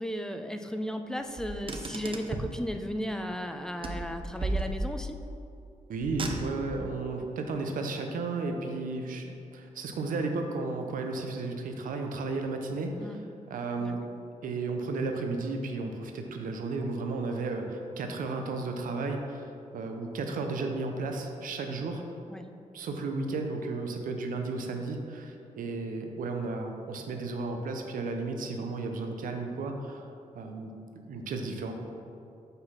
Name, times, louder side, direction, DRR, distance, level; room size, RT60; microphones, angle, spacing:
voice 1, 0.0-5.2 13.0-13.2 13.8-13.9 22.3-22.5, equal, 5° left, 6 dB, 0.4 m, -35 dB
Car, 1.4-2.6 3.8-5.1 6.0-6.8, right 2 dB, 40° right, 0.7 m, -34 dB
voice 2, 5.9-13.2 13.5-14.0 14.4-19.5 19.7-22.0 22.7-30.1 30.3-30.7 31.1-31.7, right 3 dB, 85° right, 4 dB, 0.7 m, -33 dB
5.4 x 4.0 x 5.7 m, 2.6 s
cardioid pair, 75°, 14 cm